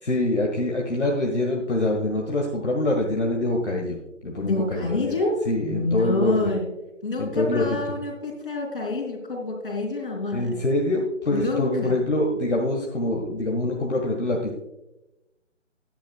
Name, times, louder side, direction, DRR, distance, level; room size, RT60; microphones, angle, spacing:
voice 1, 0.0-4.0 4.2-5.2 5.5-6.5 7.2-7.8 10.3-14.6, left 1 dB, 65° left, 0 dB, 1.7 m, -25 dB
voice 2, 4.4-6.7 7.0-10.6 11.3-12.0, left 2 dB, 45° left, 0 dB, 3.6 m, -27 dB
13.5 x 10.5 x 2.3 m, 0.95 s
figure-of-eight pair, 155°, 37 cm